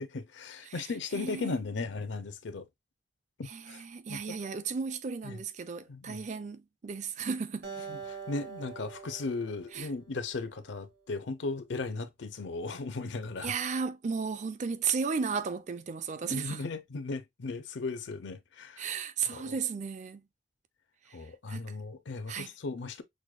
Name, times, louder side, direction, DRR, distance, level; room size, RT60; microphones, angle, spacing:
voice 1, 0.0-2.7 3.4-4.4 5.2-5.4 5.9-6.3 7.9-13.5 16.2-18.9 19.3-19.5 21.1-23.0, left 3 dB, 75° left, 0.6 m, -37 dB
voice 2, 1.1-1.5 3.5-7.7 9.7-9.9 13.4-16.6 18.8-20.2 21.1-21.2 21.5-21.8 22.3-22.5, right 5 dB, 40° right, 0.4 m, -34 dB
Acoustic guitar, 7.6-11.0, right 5 dB, 60° right, 1.1 m, -45 dB
6.3 x 2.2 x 2.3 m
head